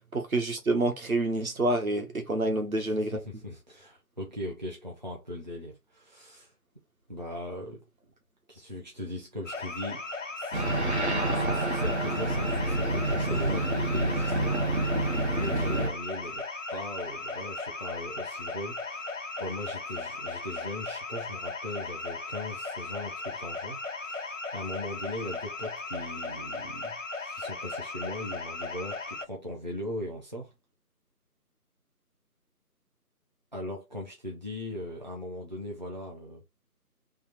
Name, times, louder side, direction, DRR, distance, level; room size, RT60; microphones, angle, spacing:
voice 1, 0.1-3.2, right 2 dB, 60° right, 1.5 m, -27 dB
voice 2, 2.8-6.5 7.1-7.8 8.5-16.5 16.7-19.1 19.4-30.5 33.5-36.4, left 1 dB, 30° right, 0.8 m, -39 dB
sound 1, 9.5-29.3, left 3 dB, 55° left, 0.5 m, -37 dB
sound 2, 10.5-15.9, right 1 dB, 45° right, 1.1 m, -28 dB
3.4 x 2.9 x 4.5 m
figure-of-eight pair, 170°, 47 cm